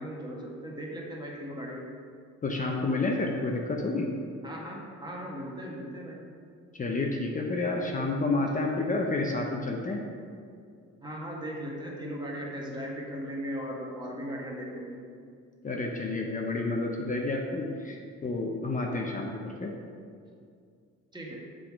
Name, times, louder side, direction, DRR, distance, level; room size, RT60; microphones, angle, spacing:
voice 1, 0.0-1.8 4.4-6.2 8.5-8.6 11.0-15.0 21.1-21.4, equal, 15° right, -3 dB, 1.4 m, -37 dB
voice 2, 2.4-4.1 6.8-10.0 15.6-19.7, left 2 dB, 25° left, 0 dB, 0.6 m, -30 dB
6.7 x 3.8 x 4.6 m, 2.3 s
cardioid pair, 90°, 30 cm